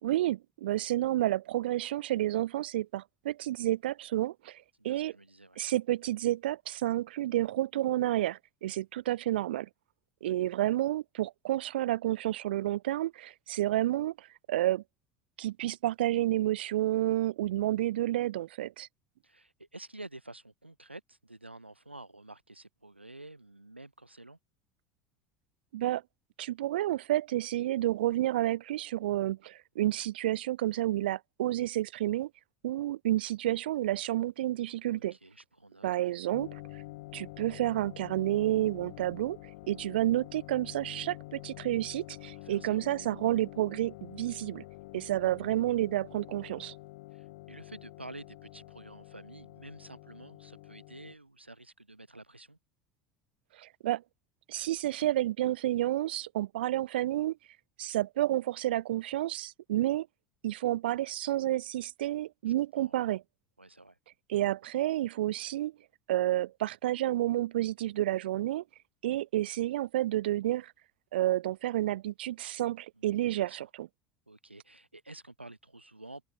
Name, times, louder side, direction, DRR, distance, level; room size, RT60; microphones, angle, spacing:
voice 1, 0.0-5.1 5.6-9.7 10.2-14.8 15.4-18.9 25.7-26.0 26.4-32.3 32.6-35.1 35.8-36.6 37.1-39.4 39.7-44.6 44.9-46.7 53.6-54.0 54.5-57.4 57.8-60.1 60.4-63.2 64.3-65.7 66.1-68.6 69.0-70.7 71.1-73.9, right 14 dB, 65° right, 1.1 m, -30 dB
voice 2, 4.8-5.6 10.2-10.3 19.2-24.4 34.9-36.2 42.3-42.8 47.1-52.6 62.8-63.1 63.6-64.0 73.0-73.7 74.3-76.2, right 2 dB, 85° right, 3.8 m, -50 dB
sound 1, 36.3-51.1, left 20 dB, 60° left, 4.1 m, -47 dB
figure-of-eight pair, 70°, 6 cm